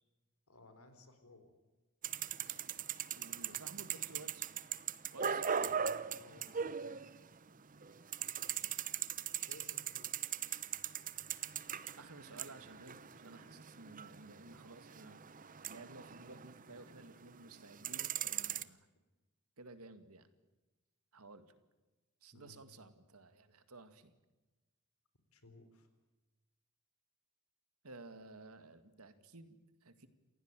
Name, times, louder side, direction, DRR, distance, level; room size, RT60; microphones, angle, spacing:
voice 1, 0.5-1.5 5.6-6.9 9.5-10.1 22.3-22.6 25.3-25.9, left 2 dB, 80° left, 9 dB, 4.3 m, -60 dB
roda livre bike jr, 2.0-7.5 7.7-17.1 17.5-18.6, right 8 dB, 40° right, 0.9 m, -40 dB
voice 2, 3.1-4.5 5.1-5.5 12.0-18.9 19.6-20.3 21.1-21.5 22.2-24.1 27.8-30.1, right 3 dB, 90° right, 10 dB, 2.2 m, -55 dB
28.5 x 16.0 x 9.1 m, 1.1 s
head